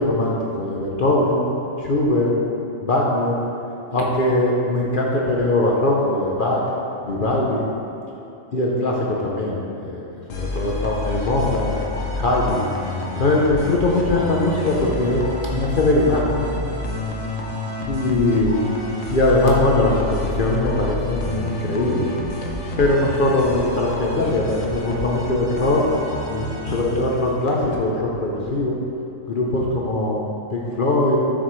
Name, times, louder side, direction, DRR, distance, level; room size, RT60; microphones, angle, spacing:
voice 1, 0.0-1.5 1.8-2.3 2.8-3.4 3.9-6.6 7.0-7.7 8.5-10.1 10.3-11.7 12.2-12.6 13.2-15.2 15.5-16.5 17.9-18.6 19.1-22.1 22.8-25.9 26.3-28.8 29.3-30.2 30.5-31.2, left 2 dB, 50° left, -3 dB, 0.8 m, -21 dB
sound 1, 10.3-27.7, left 2 dB, 85° left, 1.3 m, -29 dB
7.8 x 6.2 x 3.1 m, 2.8 s
omnidirectional pair, 1.3 m